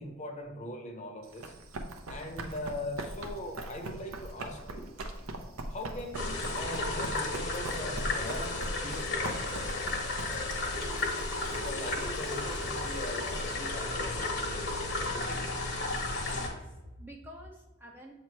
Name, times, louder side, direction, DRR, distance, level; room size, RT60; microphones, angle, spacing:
voice 1, 0.0-1.5 2.1-4.9 5.7-9.5 11.5-15.4, left 1 dB, 35° left, 3 dB, 0.8 m, -41 dB
Run, 1.2-13.5, right 2 dB, 80° right, 0.7 m, -42 dB
sound 1, 6.1-16.5, left 2 dB, 55° left, 1.1 m, -33 dB
voice 2, 16.2-18.1, equal, 10° right, -1 dB, 0.5 m, -48 dB
7.6 x 2.9 x 4.5 m, 1.1 s
head